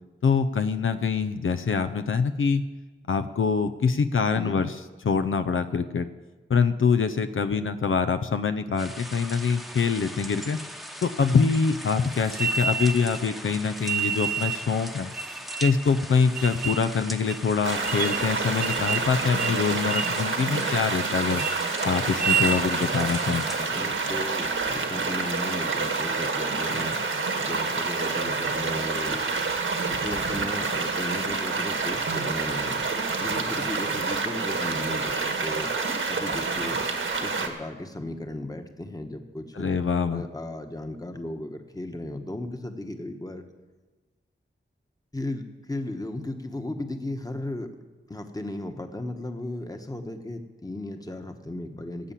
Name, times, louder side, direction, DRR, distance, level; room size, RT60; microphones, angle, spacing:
voice 1, 0.2-2.6 3.1-4.7 5.0-6.1 6.5-10.6 11.0-15.1 15.6-21.4 21.8-23.5 39.6-40.2, left 5 dB, 80° left, 10 dB, 0.6 m, -24 dB
voice 2, 4.3-4.7 23.6-27.0 27.4-29.5 29.9-32.9 33.2-35.7 36.1-36.8 37.2-39.7 40.1-43.4 45.1-47.7 48.1-52.1, left 1 dB, 20° left, 6 dB, 1.3 m, -35 dB
sound 1, 8.8-23.6, equal, ahead, 1.0 m, -40 dB
sound 2, 12.3-13.2 13.8-14.7 15.1-15.9 16.4-16.8 17.3-17.4 17.8-18.3 18.6-19.1 19.4-19.6 19.9-20.2 20.6-21.0 21.3-21.6 22.1-22.6, right 6 dB, 45° right, 0.6 m, -29 dB
sound 3, 17.6-37.5, right 4 dB, 80° right, 1.6 m, -28 dB
17.0 x 8.3 x 7.4 m, 1.3 s
wide cardioid pair, 90°, 20 cm